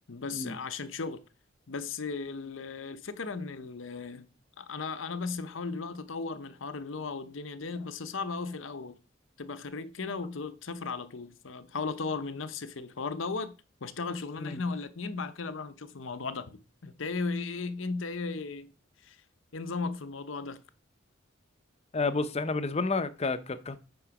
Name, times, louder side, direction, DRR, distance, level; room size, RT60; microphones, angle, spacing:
voice 1, 0.1-1.2 1.7-4.3 4.6-9.0 9.4-13.5 13.8-18.7 19.0-19.2 19.5-20.6, left 4 dB, 75° left, 0.8 m, -36 dB
voice 2, 21.9-23.8, left 3 dB, 30° left, 0.7 m, -30 dB
8.9 x 3.9 x 5.9 m
head